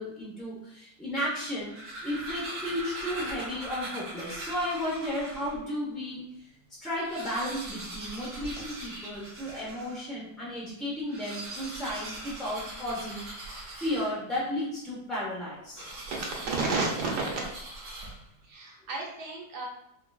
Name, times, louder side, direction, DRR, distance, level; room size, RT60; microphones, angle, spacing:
voice 1, 0.0-6.5 6.8-15.9, left 1 dB, ahead, -7 dB, 0.4 m, -34 dB
sound 1, 1.5-5.6 6.2-6.3 6.5-6.6 6.9-10.0 11.0-14.4 15.7-18.4, right 1 dB, 55° right, 1.1 m, -41 dB
voice 2, 16.1-17.3 18.5-19.7, right 3 dB, 80° right, -3 dB, 1.5 m, -31 dB
4.7 x 2.4 x 2.3 m, 0.80 s
omnidirectional pair, 1.7 m